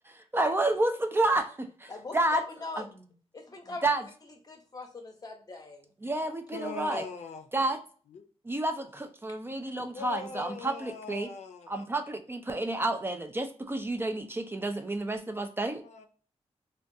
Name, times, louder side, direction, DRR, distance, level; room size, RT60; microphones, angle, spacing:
voice 1, 0.3-2.4 2.8-2.9 3.8-4.0 6.0-7.0 7.5-7.8 8.5-11.3 11.7-15.8, right 2 dB, 20° right, 6 dB, 0.3 m, -30 dB
voice 2, 1.9-4.0 4.4-5.9, left 3 dB, 35° left, 4 dB, 0.7 m, -42 dB
voice 3, 6.5-7.5 8.1-8.3 9.9-11.8 15.8-16.1, left 4 dB, 85° left, 6 dB, 0.4 m, -41 dB
3.5 x 2.3 x 2.6 m, 0.42 s
wide cardioid pair, 125°, 12 cm